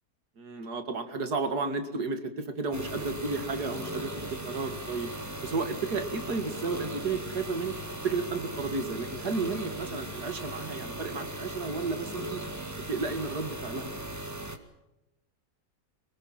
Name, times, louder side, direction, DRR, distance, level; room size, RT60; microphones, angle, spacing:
voice 1, 0.4-5.1 5.4-7.8 8.0-12.4 12.9-13.9, right 4 dB, 75° right, 8 dB, 2.7 m, -32 dB
sound 1, 2.7-14.6, right 1 dB, 10° right, 1.8 m, -38 dB
25.5 x 19.0 x 7.5 m, 0.94 s
omnidirectional pair, 1.7 m